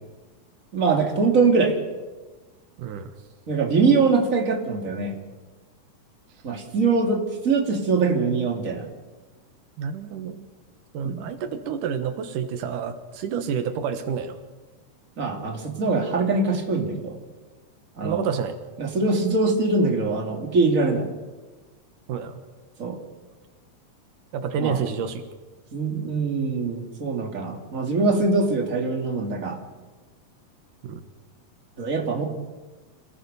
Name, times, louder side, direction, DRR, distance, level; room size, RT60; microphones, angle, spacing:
voice 1, 0.7-1.8 3.5-5.1 6.4-8.9 11.0-11.2 15.2-17.2 18.0-18.3 18.8-21.1 22.8-23.0 24.6-24.8 25.7-29.6 31.8-32.2, right 4 dB, 25° right, 2 dB, 3.0 m, -23 dB
voice 2, 2.8-3.1 9.8-10.5 10.9-14.4 18.0-18.6 22.1-22.4 24.3-25.2 30.8-31.0, right 7 dB, 85° right, 9 dB, 2.9 m, -29 dB
27.0 x 17.5 x 6.9 m, 1.2 s
omnidirectional pair, 3.6 m